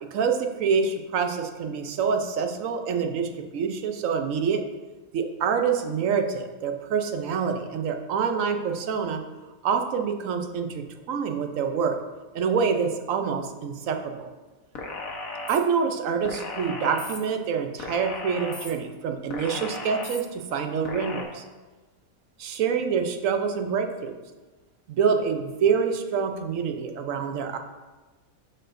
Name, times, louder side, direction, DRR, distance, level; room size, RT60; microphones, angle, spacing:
voice 1, 0.1-4.6 5.1-9.2 9.6-12.0 12.3-14.3 15.5-21.4 22.4-24.1 24.9-27.6, right 6 dB, 70° right, 6 dB, 1.0 m, -26 dB
sound 1, 14.7-15.6 16.2-17.2 17.8-18.7 19.3-20.2 20.8-21.2, left 3 dB, 75° left, 1.4 m, -35 dB
12.5 x 4.4 x 2.6 m, 1.2 s
omnidirectional pair, 1.5 m